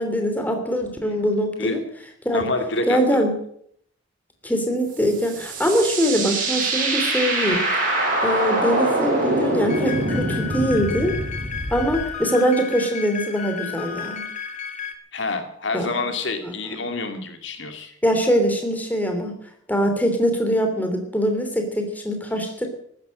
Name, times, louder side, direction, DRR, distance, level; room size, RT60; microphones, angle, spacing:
voice 1, 0.0-1.8 2.2-2.5 2.9-3.3 4.4-7.6 8.2-11.1 11.7-14.2 15.7-15.9 16.4-16.5 18.0-19.3 19.7-22.7, equal, 10° left, 4 dB, 3.1 m, -22 dB
voice 2, 2.3-3.2 15.1-17.9, left 3 dB, 65° left, 6 dB, 2.4 m, -27 dB
sound 1, 4.9-12.1, right 2 dB, 45° right, 6.2 m, -24 dB
sound 2, 9.7-14.9, left 7 dB, 35° left, 2.2 m, -33 dB
15.0 x 12.5 x 7.6 m, 0.67 s
head